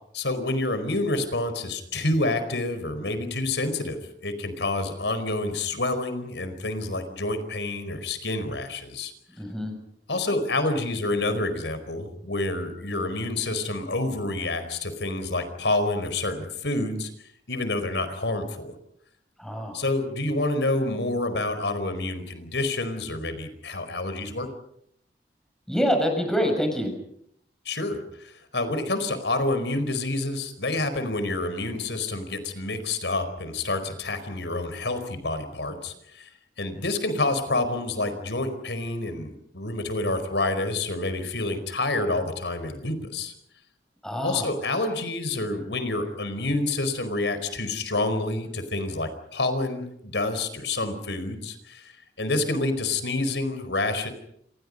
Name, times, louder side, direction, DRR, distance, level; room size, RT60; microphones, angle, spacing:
voice 1, 0.1-9.1 10.1-17.1 17.5-18.7 19.7-24.5 27.6-36.3 36.6-43.3 44.2-51.9 52.2-54.1, left 2 dB, 80° left, 10 dB, 4.8 m, -28 dB
voice 2, 9.4-9.7 19.4-19.8 25.7-26.9 44.0-44.5, equal, 5° left, 3 dB, 6.5 m, -26 dB
28.0 x 27.5 x 5.4 m, 0.71 s
head